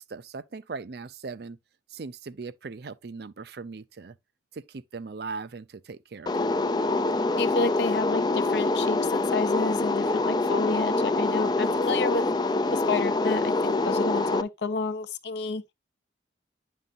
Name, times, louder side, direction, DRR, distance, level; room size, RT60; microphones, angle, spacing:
voice 1, 0.0-1.6 1.9-4.1 4.5-6.6, right 4 dB, 55° right, 0.5 m, -39 dB
sound 1, 6.3-14.4, left 2 dB, 20° left, 0.4 m, -25 dB
voice 2, 7.4-12.2 12.7-15.6, left 3 dB, 65° left, 0.8 m, -30 dB
10.0 x 5.5 x 2.5 m
head